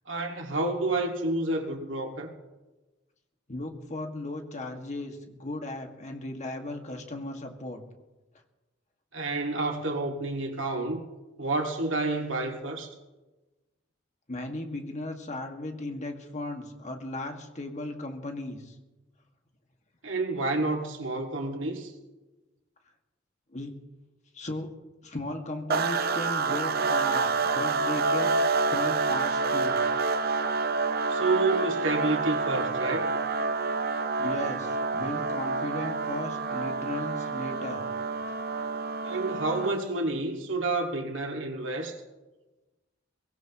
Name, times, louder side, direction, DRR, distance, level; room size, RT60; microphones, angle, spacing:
voice 1, 0.1-2.3 9.1-11.1 11.4-13.0 20.0-21.9 31.1-33.1 39.0-42.0, right 2 dB, 85° right, 2.1 m, -29 dB
voice 2, 3.5-7.8 14.3-18.8 23.5-23.7 24.3-24.7 25.0-29.8 34.2-37.8 38.3-38.4, left 2 dB, 40° left, 1.9 m, -36 dB
sound 1, 25.7-39.9, right 4 dB, 55° right, 0.7 m, -28 dB
23.5 x 17.5 x 3.1 m
head